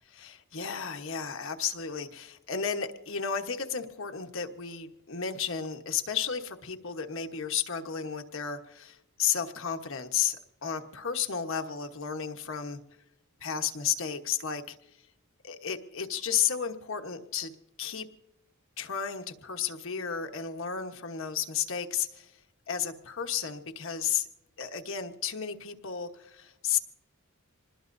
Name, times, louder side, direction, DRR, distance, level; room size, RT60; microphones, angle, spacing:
voice 1, 0.1-10.4 10.6-12.8 13.4-14.8 15.4-18.1 18.8-22.4 22.7-24.3 24.6-26.8, left 8 dB, 60° left, 6 dB, 1.1 m, -33 dB
26.0 x 20.5 x 2.6 m, 0.87 s
head